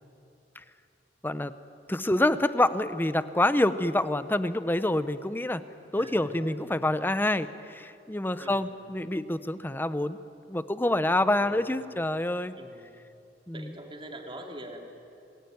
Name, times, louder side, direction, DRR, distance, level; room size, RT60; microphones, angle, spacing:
voice 1, 1.9-5.6 5.9-10.2 10.5-12.5 13.5-13.7, left 1 dB, 10° left, 13 dB, 0.7 m, -27 dB
voice 2, 6.0-6.6 8.4-8.7 11.3-11.6 12.5-12.9 13.5-14.9, right 1 dB, 30° right, 1 dB, 3.1 m, -43 dB
27.5 x 19.5 x 9.4 m, 2.7 s
head